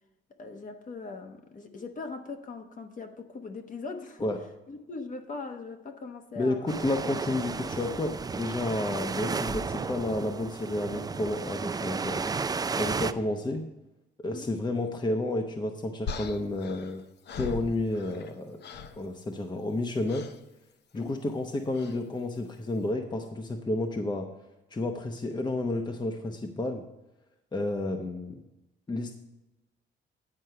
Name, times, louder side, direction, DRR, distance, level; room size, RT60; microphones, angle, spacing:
voice 1, 0.4-4.3 4.7-6.9 7.3-7.4 14.3-14.5 20.9-21.1, left 4 dB, 40° left, 6 dB, 1.1 m, -40 dB
voice 2, 6.4-12.2 12.8-13.6 14.2-17.0 17.3-18.6 19.0-20.3 20.9-24.3 24.7-26.8 27.5-28.4 28.9-29.1, left 2 dB, 20° left, 4 dB, 0.8 m, -31 dB
sound 1, 6.7-13.1, right 4 dB, 20° right, 0.3 m, -33 dB
sound 2, 16.1-18.3 18.6-19.0 20.1-20.4 21.7-22.0, left 5 dB, 60° left, 0.7 m, -39 dB
9.5 x 4.5 x 6.6 m, 0.98 s
cardioid pair, 90°, 20 cm